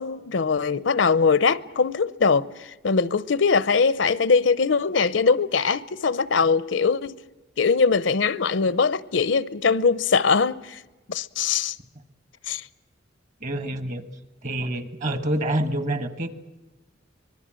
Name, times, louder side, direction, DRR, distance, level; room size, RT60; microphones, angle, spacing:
voice 1, 0.0-7.1 7.6-10.8 11.1-11.8 12.5-12.7, left 5 dB, 75° left, 0.7 m, -22 dB
voice 2, 13.4-14.0 14.4-16.3, right 1 dB, 40° right, 1.5 m, -27 dB
25.0 x 21.0 x 7.6 m
head